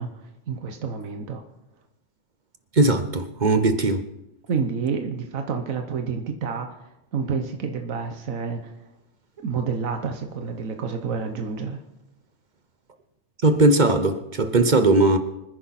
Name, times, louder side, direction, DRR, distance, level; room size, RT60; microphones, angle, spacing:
voice 1, 0.0-1.4 4.5-6.7 7.1-8.7 9.4-11.8, right 5 dB, 75° right, 1.5 m, -29 dB
voice 2, 2.7-4.0 13.4-15.2, right 2 dB, 40° right, 1.0 m, -19 dB
25.5 x 10.0 x 4.3 m
omnidirectional pair, 1.4 m